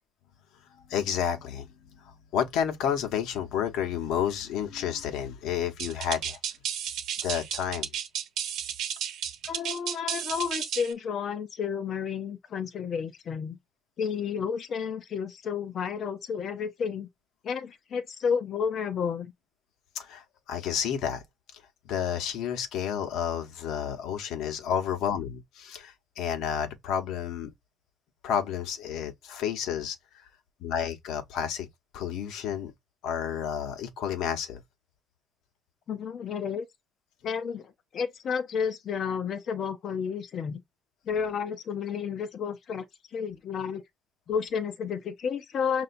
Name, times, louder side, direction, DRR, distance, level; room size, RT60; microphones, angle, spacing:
voice 1, 0.9-1.7 2.0-6.4 7.2-7.9 19.9-21.2 21.8-27.5 28.2-30.2 30.6-31.7 31.9-32.7 33.0-34.6, left 8 dB, 75° left, 1.0 m, -31 dB
sound 1, 5.8-10.9, right 9 dB, 65° right, 1.0 m, -33 dB
voice 2, 9.4-13.6 14.0-17.1 17.4-19.3 35.9-36.7 37.2-40.6 41.1-42.8 43.1-43.8 44.3-45.8, left 6 dB, 45° left, 0.6 m, -31 dB
6.6 x 2.6 x 2.6 m
cardioid pair, 150°, 0 cm